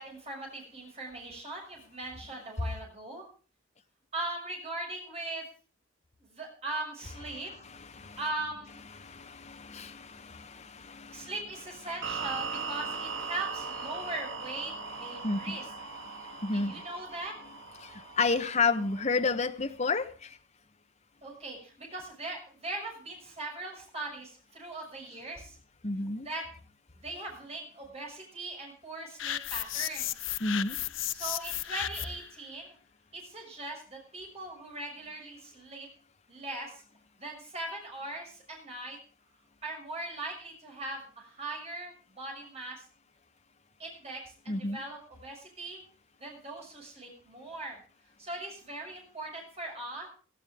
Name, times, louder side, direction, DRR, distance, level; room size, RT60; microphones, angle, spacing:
voice 1, 0.0-3.2 4.1-5.5 6.2-7.5 8.2-8.8 11.1-14.7 15.0-15.7 16.5-17.3 21.2-25.6 26.2-26.5 26.9-30.3 31.1-32.7 33.1-35.9 36.3-36.8 37.2-39.0 39.6-42.8 43.8-45.8 46.2-47.8 48.2-50.1, right 2 dB, 30° right, 6.4 m, -40 dB
voice 2, 7.6-8.2 9.0-11.3 15.2-15.6 16.0-16.1 16.4-16.7 18.2-20.1 25.8-26.3 30.4-30.7 44.5-44.8, left 3 dB, 35° left, 1.1 m, -31 dB
sound 1, 12.0-19.2, right 5 dB, 60° right, 1.6 m, -39 dB
sound 2, 29.2-32.3, left 13 dB, 70° left, 0.6 m, -34 dB
17.0 x 15.5 x 3.6 m
head